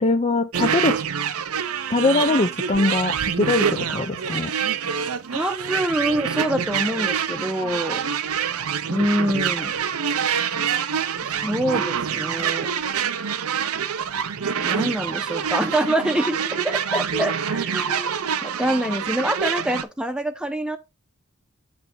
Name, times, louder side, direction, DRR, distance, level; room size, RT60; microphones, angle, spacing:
voice 1, 0.0-1.0 1.9-4.5 17.1-17.2, left 3 dB, 30° left, 0.5 m, -22 dB
sound 1, 0.5-19.8, right 7 dB, 75° right, 0.6 m, -26 dB
voice 2, 5.3-8.0 8.9-9.8 11.2-12.7 14.6-18.1 18.4-20.8, right 1 dB, 5° right, 0.7 m, -25 dB
8.0 x 3.3 x 5.5 m
head